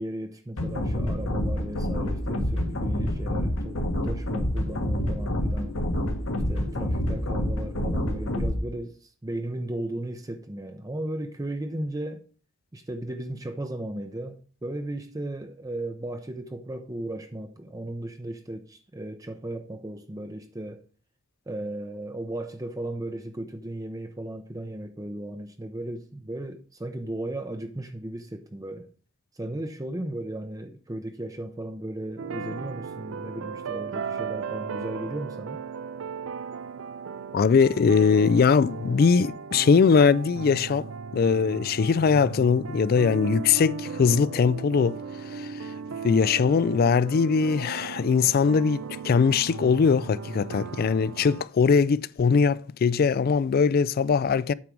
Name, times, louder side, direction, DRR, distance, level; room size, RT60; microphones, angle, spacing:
voice 1, 0.0-5.8 6.5-12.2 12.7-20.8 21.5-28.9 29.3-35.6, right 1 dB, 20° right, 0.6 m, -35 dB
sound 1, 0.6-8.6, left 1 dB, 85° left, 1.6 m, -27 dB
sound 2, 32.2-51.4, right 6 dB, 85° right, 0.5 m, -36 dB
voice 2, 37.3-40.9 41.1-45.0 45.3-45.5 46.0-54.5, left 5 dB, 50° left, 0.3 m, -21 dB
8.6 x 4.6 x 6.1 m
head